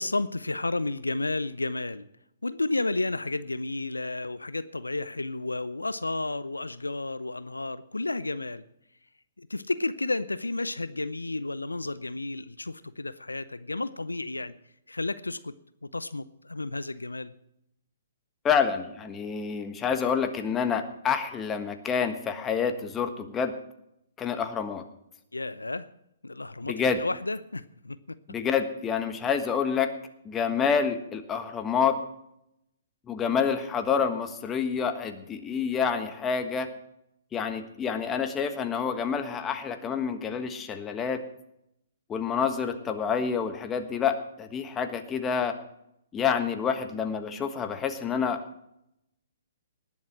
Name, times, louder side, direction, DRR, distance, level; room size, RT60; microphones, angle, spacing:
voice 1, 0.0-2.1 2.4-8.6 9.4-14.5 14.9-15.5 15.8-17.3 25.3-25.9 26.2-28.2, left 2 dB, 85° left, 15 dB, 0.6 m, -32 dB
voice 2, 18.4-23.5 24.2-24.8 26.6-27.0 28.3-29.9 30.2-32.0 33.1-36.7 37.3-41.2 42.1-45.6 46.1-48.4, left 6 dB, 20° left, 7 dB, 1.4 m, -28 dB
19.5 x 7.4 x 6.0 m, 0.81 s
figure-of-eight pair, 125°, 0 cm